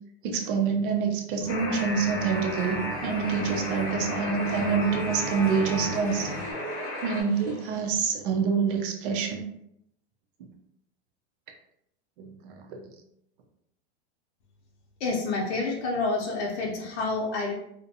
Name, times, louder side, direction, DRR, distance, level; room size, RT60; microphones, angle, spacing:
voice 1, 0.2-6.3 7.0-9.5 12.2-12.8, right 6 dB, 55° right, 2 dB, 0.5 m, -27 dB
Acoustic guitar, 1.4-6.5, left 1 dB, 15° right, 0.9 m, -37 dB
Alarm, 1.5-7.2, left 1 dB, 30° left, 0.5 m, -34 dB
sound 1, 2.4-7.8, right 1 dB, 15° left, 1.0 m, -44 dB
voice 2, 15.0-17.5, left 3 dB, 80° left, -2 dB, 0.7 m, -28 dB
2.5 x 2.1 x 2.7 m, 0.77 s
supercardioid pair, 170°, 33 cm